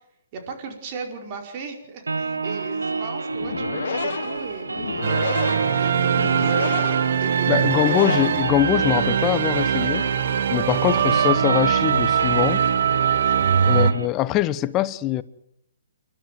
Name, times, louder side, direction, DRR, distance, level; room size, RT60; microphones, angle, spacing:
voice 1, 0.3-6.6 7.2-7.9 11.0-11.1 13.2-13.6, right 5 dB, 40° right, 5.0 m, -37 dB
sound 1, 2.1-14.1, right 4 dB, 85° right, 1.6 m, -28 dB
sound 2, 3.3-9.0, left 7 dB, 60° left, 1.3 m, -32 dB
sound 3, 5.0-13.9, right 8 dB, 55° right, 1.0 m, -22 dB
voice 2, 7.5-10.1 10.5-12.7 13.6-15.2, left 14 dB, 25° left, 0.9 m, -23 dB
29.5 x 12.5 x 9.2 m
figure-of-eight pair, 130°, 0 cm